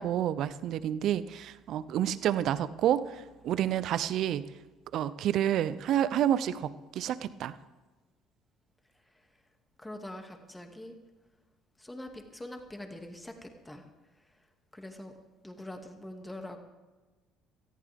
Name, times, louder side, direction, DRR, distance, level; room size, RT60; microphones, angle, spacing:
voice 1, 0.0-4.4 4.9-7.6, right 11 dB, 60° right, 16 dB, 0.6 m, -29 dB
voice 2, 9.8-10.9 11.8-13.8 14.7-15.1 15.4-16.6, left 1 dB, 10° left, 4 dB, 2.3 m, -43 dB
18.0 x 14.5 x 3.6 m, 1.2 s
hypercardioid pair, 60°, 0 cm